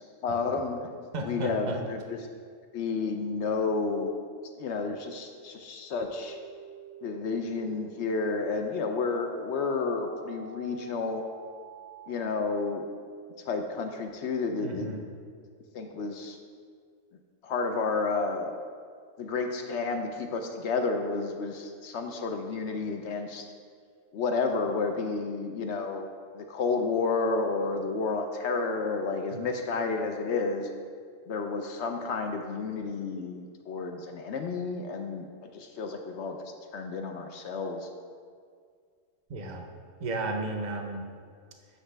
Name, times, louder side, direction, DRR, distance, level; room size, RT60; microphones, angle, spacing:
voice 1, 0.2-0.9 1.3-2.2 2.7-4.1 4.6-6.4 7.0-11.2 12.1-12.9 13.4-14.9 15.7-16.4 17.4-18.6 19.2-23.5 24.1-30.7 31.3-37.9, left 4 dB, 65° left, 5 dB, 0.8 m, -31 dB
voice 2, 1.1-1.8 14.6-15.0 29.3-29.4 39.3-39.6 40.0-41.1, right 2 dB, 40° right, 3 dB, 0.7 m, -33 dB
sound 1, 6.1-12.1, right 2 dB, 50° left, 1.1 m, -47 dB
8.0 x 6.1 x 3.3 m, 2.1 s
omnidirectional pair, 1.4 m